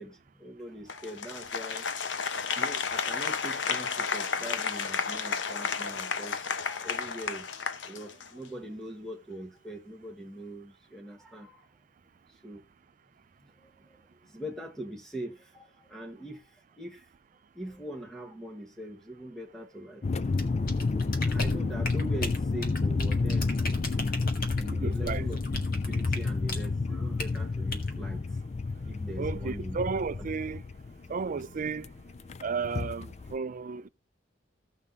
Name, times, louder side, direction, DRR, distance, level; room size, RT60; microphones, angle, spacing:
voice 1, 0.0-1.9 2.3-11.7 12.3-12.6 13.4-17.1 17.5-20.6 21.2-23.6 24.4-25.4 25.7-28.2 28.8-29.8, right 1 dB, 5° left, 1.2 m, -42 dB
Applause, 0.9-8.5, left 5 dB, 75° left, 0.9 m, -32 dB
sound 1, 20.0-33.4, left 3 dB, 35° left, 0.4 m, -30 dB
sound 2, 20.4-26.7 27.2-27.4 27.7-27.9, left 2 dB, 50° left, 1.9 m, -37 dB
voice 2, 24.6-25.3 29.2-30.6 31.1-31.9 32.4-33.9, right 5 dB, 45° right, 0.4 m, -33 dB
16.0 x 5.6 x 3.8 m
head